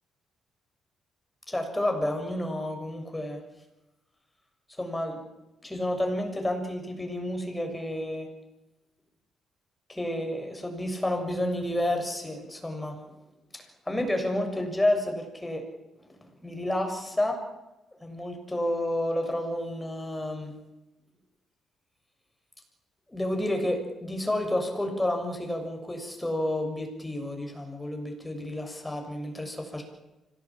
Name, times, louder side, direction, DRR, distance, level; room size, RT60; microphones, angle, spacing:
voice 1, 1.5-3.4 4.8-5.2 5.6-8.3 9.9-13.0 13.5-15.6 16.4-17.4 18.0-20.5 23.1-29.8, left 1 dB, 10° left, 3 dB, 7.1 m, -30 dB
25.5 x 18.0 x 8.9 m, 1.0 s
cardioid pair, 90°, 0 cm